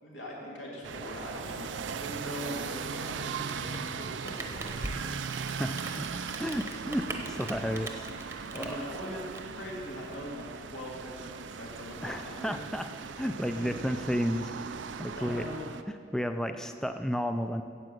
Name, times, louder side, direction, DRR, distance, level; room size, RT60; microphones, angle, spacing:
voice 1, 0.0-1.7 2.0-4.9 8.5-9.2 9.5-12.6 13.5-13.7 15.1-15.6, equal, 85° left, -4 dB, 2.9 m, -41 dB
sound 1, 0.8-15.8, right 6 dB, 80° right, 0.5 m, -39 dB
Rain, 3.3-10.1, right 2 dB, 15° right, 0.9 m, -42 dB
voice 2, 5.6-6.1 6.4-8.1 8.5-8.8 12.0-15.4 16.1-17.6, equal, 5° left, 7 dB, 0.4 m, -32 dB
9.8 x 7.5 x 7.8 m, 2.2 s
head